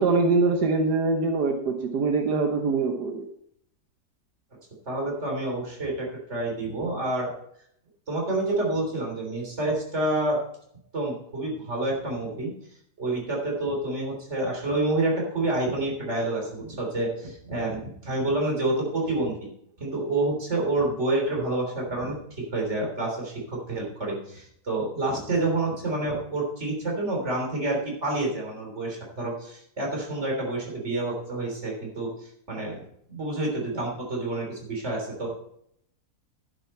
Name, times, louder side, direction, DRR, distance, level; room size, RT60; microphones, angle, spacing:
voice 1, 0.0-3.3, right 3 dB, 85° right, 4 dB, 1.7 m, -23 dB
voice 2, 4.9-7.3 8.1-10.4 10.9-12.5 13.0-19.5 19.8-22.2 22.5-32.8 33.1-35.4, right 2 dB, 45° right, -1 dB, 3.8 m, -28 dB
11.5 x 9.7 x 4.4 m, 0.72 s
omnidirectional pair, 1.7 m